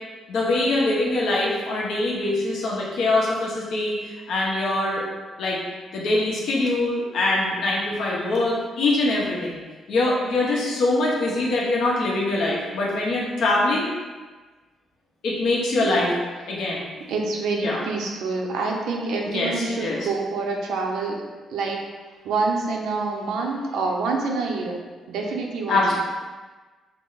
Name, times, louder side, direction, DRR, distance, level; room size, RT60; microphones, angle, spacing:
voice 1, 0.3-5.0 5.4-5.6 5.9-9.6 9.9-13.9 15.2-16.1 16.5-16.8 17.6-17.8 19.2-20.0 25.7-26.0, left 2 dB, 65° left, -4 dB, 1.2 m, -23 dB
voice 2, 15.8-16.1 17.1-21.2 21.5-21.8 22.2-26.0, right 3 dB, 80° right, 0 dB, 0.7 m, -27 dB
5.7 x 2.2 x 4.0 m, 1.3 s
cardioid pair, 170°, 0 cm